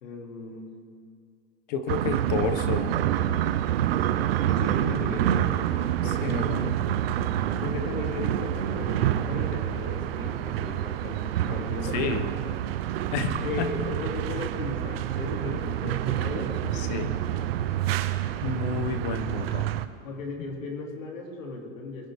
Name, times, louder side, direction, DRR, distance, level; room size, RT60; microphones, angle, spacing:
voice 1, 0.0-0.7 4.5-6.4 7.6-12.5 13.4-17.5 20.0-22.1, left 3 dB, 90° left, 1 dB, 2.8 m, -36 dB
voice 2, 1.7-3.0 6.1-6.7 11.9-12.3 13.1-13.8 16.7-17.1 18.4-19.7 20.4-20.5, left 5 dB, 35° left, 9 dB, 0.9 m, -30 dB
sound 1, 1.9-19.9, right 11 dB, 50° right, 0.6 m, -27 dB
22.0 x 10.5 x 3.5 m, 2.3 s
supercardioid pair, 170°, 39 cm